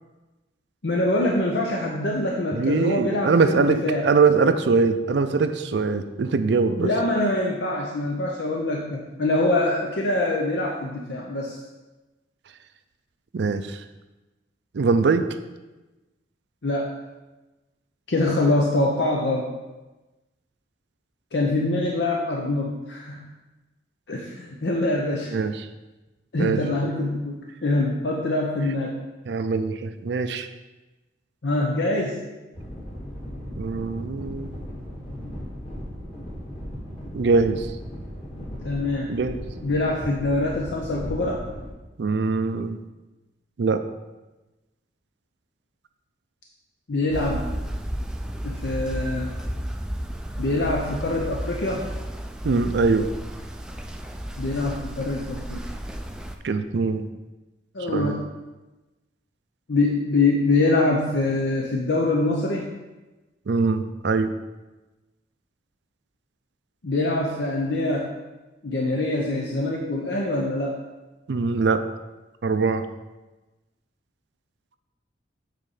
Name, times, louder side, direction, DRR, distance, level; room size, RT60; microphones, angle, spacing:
voice 1, 0.8-4.1 6.8-11.6 16.6-16.9 18.1-19.5 21.3-23.3 24.1-25.4 26.3-27.4 27.6-29.0 31.4-32.2 38.6-39.1 39.6-41.4 46.9-47.5 48.4-49.3 50.4-51.9 54.4-55.6 57.7-58.2 59.7-62.7 66.8-68.1 68.6-70.8, left 2 dB, 70° left, -1 dB, 0.7 m, -24 dB
voice 2, 2.5-6.9 13.3-13.8 14.7-15.3 25.3-25.7 26.4-26.6 29.3-30.5 33.6-34.6 37.1-37.7 39.1-39.4 42.0-42.8 43.6-43.8 52.4-53.1 56.4-57.1 57.9-58.1 63.5-64.3 71.3-71.8 72.4-72.8, right 4 dB, 70° right, 10 dB, 0.4 m, -22 dB
sound 1, 32.5-41.7, equal, 30° left, 1.8 m, -36 dB
sound 2, 47.1-56.4, equal, 5° right, 0.4 m, -33 dB
7.8 x 4.2 x 4.9 m, 1.1 s
head